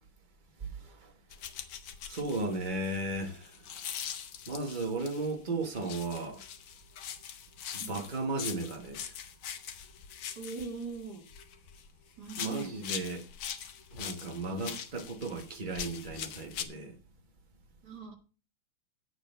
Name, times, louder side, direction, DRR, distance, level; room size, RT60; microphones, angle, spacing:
voice 1, 0.6-1.1 2.1-3.7 4.5-6.4 7.7-9.1 12.4-13.3 13.9-17.0, right 2 dB, 25° right, 1.3 m, -35 dB
sound 1, 1.3-5.3 5.8-11.9 12.2-16.7, left 9 dB, 75° left, 1.8 m, -42 dB
voice 2, 10.4-11.3 12.2-12.7 14.5-14.8 17.8-18.2, right 4 dB, 50° right, 2.3 m, -41 dB
9.1 x 7.9 x 5.5 m
omnidirectional pair, 2.4 m